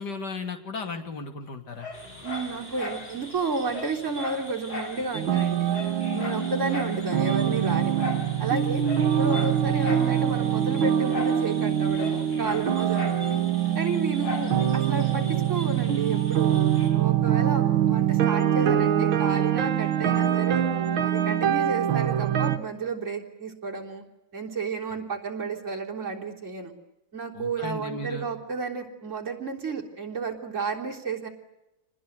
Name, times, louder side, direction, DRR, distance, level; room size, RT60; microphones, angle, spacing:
voice 1, 0.0-1.9 27.3-28.3, left 3 dB, 50° left, 5 dB, 3.2 m, -35 dB
Dog, 1.8-3.1 3.4-3.5 3.7-5.0 5.3-5.4 5.7-7.0 8.0-8.3 8.8-10.1 11.1-11.4 11.7-13.2 14.2-14.5 15.0-15.1, left 4 dB, 70° left, 5.2 m, -36 dB
sound 1, 1.9-16.9, equal, 25° left, 7.2 m, -45 dB
voice 2, 2.2-5.7 6.1-8.8 9.2-13.4 13.8-16.6 16.9-20.6 21.0-24.0 24.3-26.7 27.1-31.3, right 4 dB, 35° right, -1 dB, 4.0 m, -32 dB
sound 2, 5.1-22.6, right 10 dB, 70° right, 2.1 m, -24 dB
26.5 x 20.5 x 9.4 m, 0.93 s
omnidirectional pair, 2.3 m